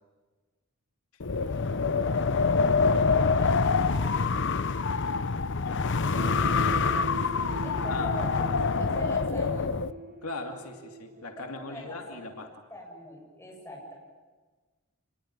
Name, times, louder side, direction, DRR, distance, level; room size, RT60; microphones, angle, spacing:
Wind, 1.2-9.9, left 4 dB, 55° left, 0.8 m, -26 dB
voice 1, 1.4-4.4 7.3-9.7 11.4-12.0 12.7-13.9, left 1 dB, 10° left, -1 dB, 7.5 m, -43 dB
voice 2, 5.6-6.9 7.9-8.1 10.2-12.6, left 2 dB, 80° left, 4 dB, 2.6 m, -39 dB
sound 1, 6.1-11.9, right 3 dB, 45° right, 2.8 m, -41 dB
27.5 x 21.0 x 9.9 m, 1.3 s
head